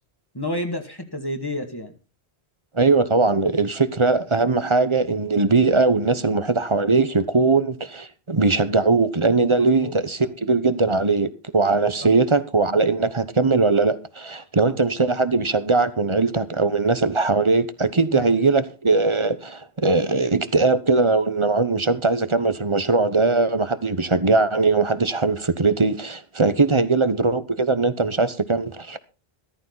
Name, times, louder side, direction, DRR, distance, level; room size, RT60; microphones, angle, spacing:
voice 1, 0.3-1.9 9.6-9.9 14.6-14.8 18.1-18.3 26.6-26.9, left 1 dB, 20° left, 2.2 m, -30 dB
voice 2, 2.7-29.0, right 3 dB, 30° right, 1.0 m, -20 dB
14.0 x 14.0 x 4.0 m
omnidirectional pair, 1.1 m